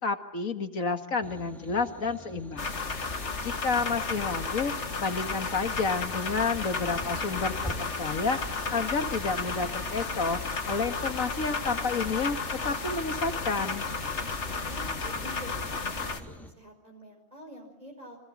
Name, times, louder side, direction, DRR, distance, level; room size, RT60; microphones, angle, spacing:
voice 1, 0.0-2.7 3.4-4.7 5.0-10.4 10.7-12.4 12.6-13.9, left 4 dB, 75° left, 6 dB, 2.4 m, -30 dB
sound 1, 1.2-16.5, equal, ahead, 3.6 m, -46 dB
sound 2, 2.6-16.2, left 4 dB, 55° left, 2.2 m, -33 dB
voice 2, 14.3-18.2, equal, 30° right, 2 dB, 5.2 m, -47 dB
30.0 x 26.5 x 7.5 m, 0.85 s
omnidirectional pair, 1.4 m